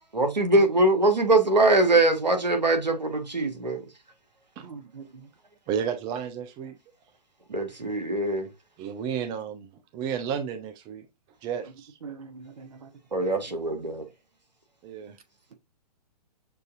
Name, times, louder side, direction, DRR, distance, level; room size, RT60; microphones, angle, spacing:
voice 1, 0.1-3.8 7.5-8.5 13.1-14.1, right 2 dB, 85° right, 1.3 m, -22 dB
voice 2, 4.6-5.1 12.0-12.9, right 5 dB, 60° right, 1.0 m, -42 dB
voice 3, 5.7-6.7 8.8-9.7 9.9-11.1 11.4-11.9 14.8-15.2, right 8 dB, 20° right, 0.5 m, -32 dB
6.5 x 2.6 x 2.5 m
figure-of-eight pair, 120°, 21 cm